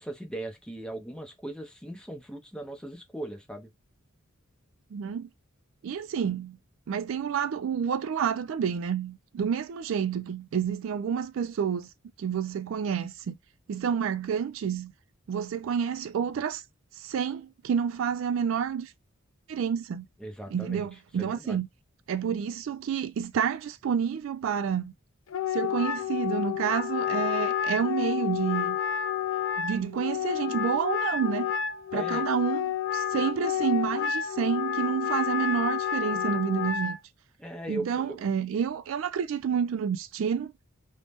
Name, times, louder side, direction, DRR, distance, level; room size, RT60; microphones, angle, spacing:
voice 1, 0.0-3.7 20.2-20.8 21.2-21.6 31.9-32.2 37.4-38.2, right 1 dB, 5° left, 0.6 m, -38 dB
voice 2, 4.9-5.3 5.8-6.6 6.9-11.9 12.2-13.3 13.7-14.9 15.3-16.6 17.0-18.9 19.5-20.1 20.5-21.7 22.1-24.9 25.5-28.8 29.6-31.5 31.9-37.0 37.7-40.5, right 7 dB, 65° right, 0.3 m, -29 dB
Wind instrument woodwind instrument, 25.3-37.0, left 9 dB, 70° left, 0.4 m, -30 dB
2.7 x 2.0 x 3.4 m
head